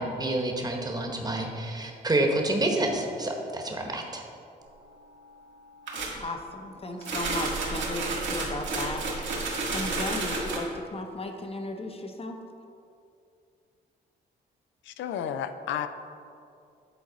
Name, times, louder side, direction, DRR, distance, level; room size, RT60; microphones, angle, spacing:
voice 1, 0.0-4.2, right 1 dB, 20° right, 2 dB, 1.0 m, -28 dB
sound 1, 5.9-6.2 7.0-10.6, right 3 dB, 75° right, 1.4 m, -31 dB
voice 2, 6.1-9.0 9.7-12.4, left 2 dB, 30° left, 5 dB, 0.7 m, -35 dB
voice 3, 14.9-15.9, left 9 dB, 80° left, 10 dB, 0.4 m, -32 dB
8.1 x 4.0 x 3.9 m, 2.5 s
cardioid pair, 70°, 19 cm